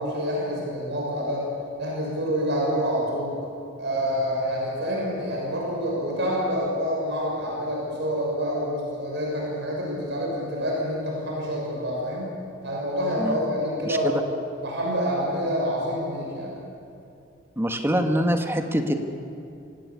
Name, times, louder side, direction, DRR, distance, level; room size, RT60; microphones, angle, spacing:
voice 1, 0.0-1.4 1.8-3.3 3.8-12.4 12.6-14.2 14.6-16.6, equal, 60° right, -3 dB, 6.8 m, -27 dB
voice 2, 17.5-18.9, equal, 10° right, 5 dB, 1.7 m, -24 dB
27.0 x 17.0 x 8.5 m, 2.6 s
head